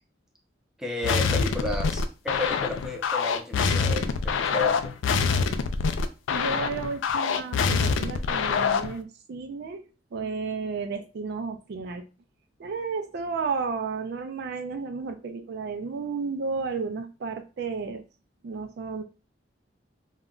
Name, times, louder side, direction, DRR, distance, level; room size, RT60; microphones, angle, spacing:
voice 1, 0.8-4.9, left 2 dB, 5° right, 1 dB, 0.5 m, -32 dB
sound 1, 1.0-9.0, left 5 dB, 85° left, 0.3 m, -25 dB
voice 2, 6.3-9.8 10.1-12.0 12.6-18.0 18.4-19.0, right 4 dB, 60° right, 7 dB, 0.3 m, -32 dB
2.3 x 2.1 x 3.6 m, 0.32 s
head